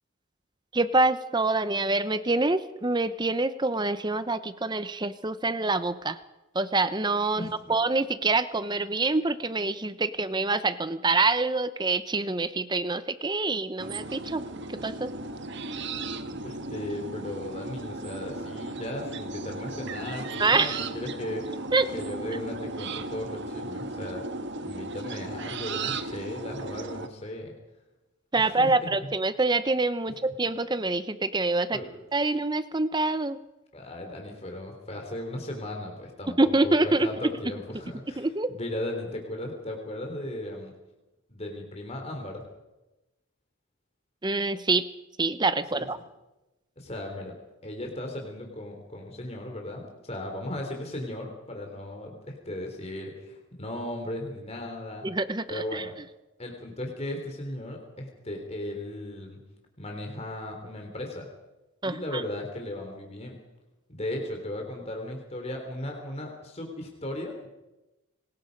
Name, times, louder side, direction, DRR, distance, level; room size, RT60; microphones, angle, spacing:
voice 1, 0.7-6.2 6.5-14.4 14.7-15.1 20.4-20.8 21.7-21.9 28.3-31.8 32.1-33.4 36.4-37.1 38.2-38.5 44.2-44.9 45.2-46.0 55.0-55.8 61.8-62.2, right 3 dB, 20° right, 13 dB, 0.7 m, -26 dB
voice 2, 7.3-7.8 16.3-21.6 21.9-24.2 24.6-27.5 28.4-28.7 29.0-29.1 31.7-32.0 33.7-40.7 41.3-42.4 45.7-45.9 46.8-47.4 47.6-55.1 55.5-55.9 56.4-59.4 59.8-61.3 61.8-63.4 63.9-67.5, left 1 dB, 30° left, 2 dB, 3.3 m, -36 dB
sound 1, 13.8-27.1, right 3 dB, 55° right, 1.4 m, -36 dB
26.5 x 19.5 x 5.3 m, 1.0 s
head